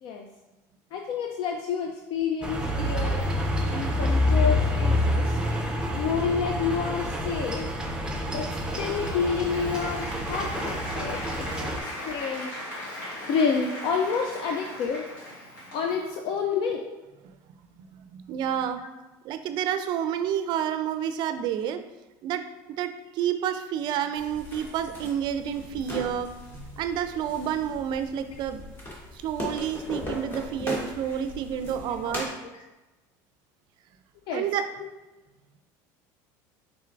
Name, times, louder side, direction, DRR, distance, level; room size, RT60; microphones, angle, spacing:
voice 1, 0.9-3.3 3.7-5.4 5.9-7.7 8.3-12.6 13.3-15.1 15.7-16.8 18.8-18.9 32.0-32.2 34.3-34.5 34.8-34.9, left 6 dB, 55° left, 3 dB, 0.4 m, -29 dB
sound 1, 2.4-11.8, left 1 dB, 10° right, 0.6 m, -27 dB
Applause, 8.6-16.2, left 1 dB, 90° left, 1.3 m, -38 dB
voice 2, 17.9-18.8 19.2-21.8 22.2-22.4 22.8-26.3 26.6-28.6 29.1-32.3 34.3-34.6, right 9 dB, 50° right, 9 dB, 0.4 m, -29 dB
sound 2, 24.1-32.3, equal, 20° left, 1.2 m, -38 dB
4.4 x 3.7 x 2.5 m, 1.1 s
supercardioid pair, 120°, 10 cm